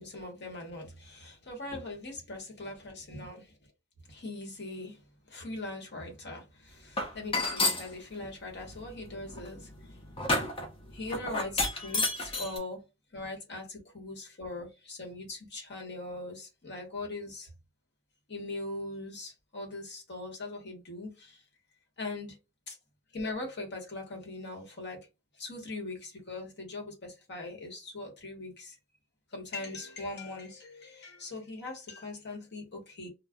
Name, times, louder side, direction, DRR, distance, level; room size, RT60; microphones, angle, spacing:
voice 1, 0.0-3.5 4.1-5.0 5.3-9.7 10.9-12.8 13.1-17.5 18.3-21.4 22.0-22.4 22.7-22.8 23.1-25.1 25.4-28.8 29.3-33.1, left 2 dB, 50° left, 1.1 m, -40 dB
sound 1, 7.0-7.9 8.6-12.6, left 2 dB, 25° left, 0.6 m, -31 dB
2.4 x 2.1 x 3.5 m
head